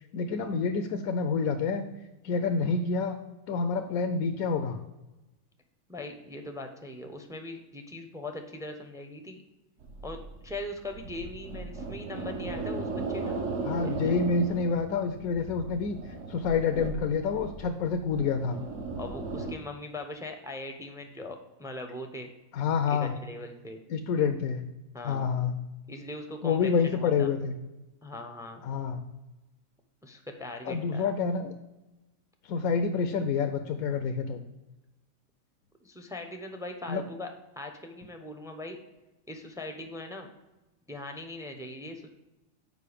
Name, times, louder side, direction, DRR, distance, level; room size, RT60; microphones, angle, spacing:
voice 1, 0.0-1.8 2.2-3.2 3.5-4.8 13.7-18.6 22.5-23.1 23.9-24.6 25.0-25.6 26.4-27.5 28.6-29.0 30.7-31.5 32.4-34.4 36.9-37.0, left 5 dB, 85° left, 6 dB, 1.1 m, -28 dB
voice 2, 5.9-9.4 10.0-13.4 13.8-14.1 19.0-22.3 22.9-23.8 24.9-25.3 25.9-27.3 28.0-28.6 30.0-31.1 35.8-38.8 39.3-40.3 40.9-42.1, left 1 dB, 5° right, 5 dB, 0.3 m, -40 dB
sound 1, 9.8-19.5, right 3 dB, 65° right, 1.1 m, -37 dB
6.7 x 5.0 x 5.0 m, 1.0 s
omnidirectional pair, 1.5 m